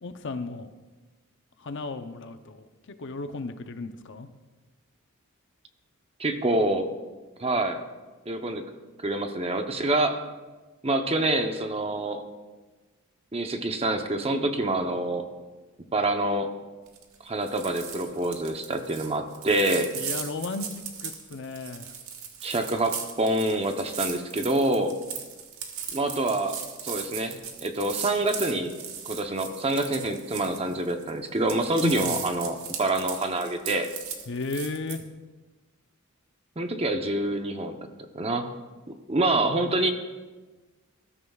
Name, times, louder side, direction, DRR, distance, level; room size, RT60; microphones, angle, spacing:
voice 1, 0.0-0.7 1.6-2.7 3.0-4.3 19.9-20.7 21.0-21.9 31.8-32.2 34.3-35.0, left 3 dB, 55° left, 8 dB, 0.7 m, -34 dB
voice 2, 6.2-6.9 7.4-7.8 8.3-8.6 9.0-10.2 10.8-12.2 13.3-15.2 15.9-16.5 17.2-19.9 22.4-24.9 25.9-28.7 29.0-33.9 36.6-37.8 38.1-38.5 39.1-39.9, right 2 dB, 25° right, 6 dB, 0.8 m, -26 dB
sound 1, 16.9-17.2 17.4-31.1 31.4-35.0, right 7 dB, 75° right, 1.5 m, -38 dB
20.0 x 13.0 x 2.4 m, 1.3 s
head